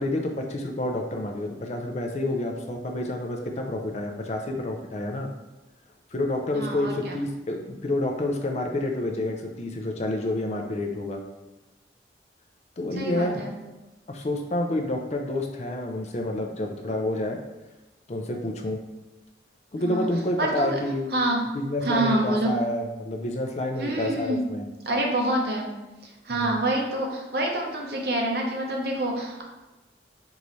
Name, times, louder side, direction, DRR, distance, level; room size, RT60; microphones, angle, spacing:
voice 1, 0.0-5.3 6.1-11.2 12.8-13.4 14.1-17.4 18.1-18.8 19.7-21.1 21.5-24.6 26.3-26.6, left 1 dB, 40° left, 3 dB, 0.4 m, -29 dB
voice 2, 6.5-7.1 13.0-13.5 19.8-20.1 20.4-20.7 21.1-21.4 21.8-22.6 23.8-24.4 24.8-25.7 26.0-29.4, right 1 dB, 60° right, 0 dB, 0.8 m, -27 dB
4.7 x 3.0 x 2.6 m, 1.1 s
head